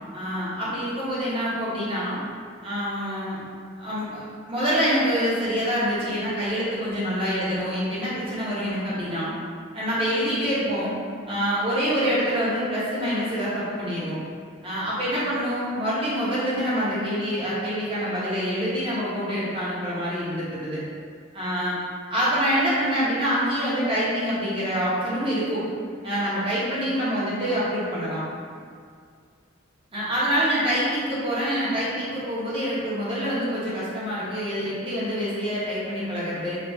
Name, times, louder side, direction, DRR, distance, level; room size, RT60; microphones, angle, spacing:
voice 1, 0.1-2.2 2.6-3.4 3.8-9.3 9.7-10.9 11.3-14.2 14.6-20.8 21.3-21.7 22.1-25.6 26.0-28.2 29.9-36.6, equal, 25° right, -9 dB, 1.0 m, -26 dB
4.1 x 2.6 x 3.5 m, 2.1 s
head